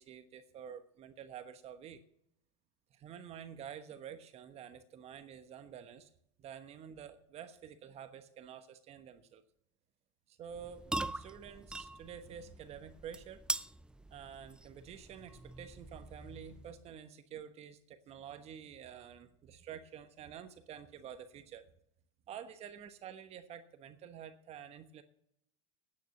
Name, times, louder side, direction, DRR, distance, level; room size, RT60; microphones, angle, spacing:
voice 1, 0.0-2.0 2.9-6.1 6.4-9.4 10.3-13.4 14.1-21.7 22.3-25.0, right 8 dB, 40° right, 10 dB, 1.1 m, -49 dB
sound 1, 10.5-16.9, right 2 dB, 5° right, 0.4 m, -43 dB
9.6 x 9.2 x 7.5 m, 0.74 s
hypercardioid pair, 95°, 16 cm